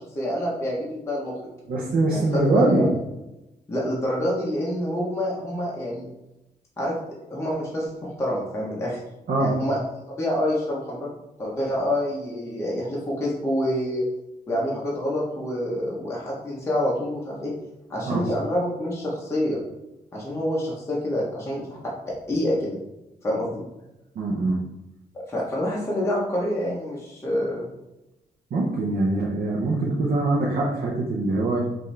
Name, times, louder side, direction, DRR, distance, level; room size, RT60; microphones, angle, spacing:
voice 1, 0.0-1.4 2.1-2.9 3.7-6.1 6.8-7.0 7.3-9.0 9.4-9.8 10.2-11.1 11.4-14.0 14.5-17.5 17.9-19.6 20.1-21.8 22.3-22.8 23.2-23.6 25.3-27.7, left 1 dB, 15° left, -5 dB, 0.8 m, -27 dB
voice 2, 1.7-2.9 9.3-9.5 18.1-18.3 24.2-24.6 28.5-31.6, right 2 dB, 65° right, -3 dB, 0.7 m, -23 dB
5.7 x 2.6 x 3.2 m, 0.95 s
wide cardioid pair, 175°, 16 cm